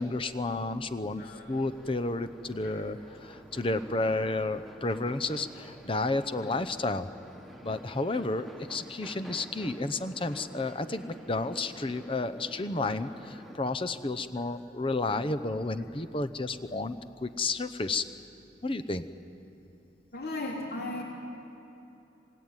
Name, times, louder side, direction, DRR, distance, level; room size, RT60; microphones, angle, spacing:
voice 1, 0.0-7.1 7.6-18.0 18.6-19.0, left 2 dB, 30° left, 10 dB, 0.8 m, -31 dB
voice 2, 1.2-1.5 2.6-2.7 20.1-21.0, left 2 dB, 55° left, -2 dB, 4.0 m, -36 dB
sound 1, 1.5-13.6, equal, ahead, 1.5 m, -50 dB
27.0 x 19.0 x 9.1 m, 3.0 s
head